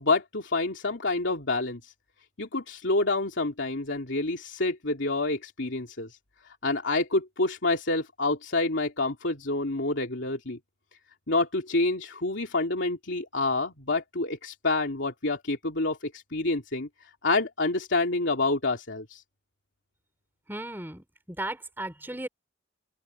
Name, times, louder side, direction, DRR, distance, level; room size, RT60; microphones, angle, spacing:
voice 1, 0.0-1.9 2.4-6.1 6.6-10.6 11.3-16.9 17.2-19.2, left 2 dB, 70° left, 2.8 m, -28 dB
voice 2, 20.5-22.3, right 1 dB, 10° right, 4.6 m, -36 dB
open air
head